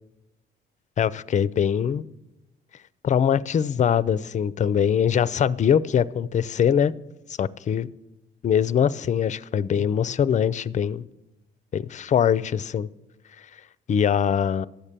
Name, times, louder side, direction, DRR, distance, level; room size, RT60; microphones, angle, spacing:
voice 1, 1.0-2.0 3.0-6.9 7.4-7.9 8.4-11.0 11.7-12.9 13.9-14.7, left 8 dB, 40° left, 19 dB, 0.4 m, -22 dB
11.5 x 7.4 x 6.7 m, 1.0 s
cardioid pair, 90°, 20 cm